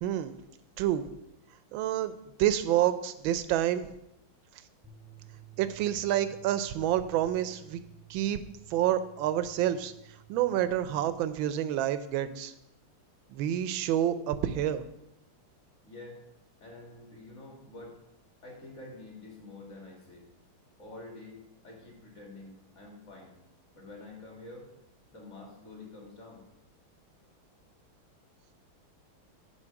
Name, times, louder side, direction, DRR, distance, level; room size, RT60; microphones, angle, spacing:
voice 1, 0.0-0.3 0.8-1.0 1.7-2.1 2.4-3.9 5.6-7.8 8.1-8.4 8.7-9.9 10.3-12.5 13.3-14.8, right 11 dB, 75° right, 12 dB, 1.3 m, -28 dB
sound 1, 4.8-11.1, right 13 dB, ahead, 0.9 m, -54 dB
voice 2, 15.8-16.2 16.6-18.0 18.4-20.3 20.8-23.4 23.7-24.7 25.1-26.5, left 2 dB, 35° left, 0 dB, 2.3 m, -48 dB
9.8 x 4.9 x 5.8 m, 0.83 s
omnidirectional pair, 2.3 m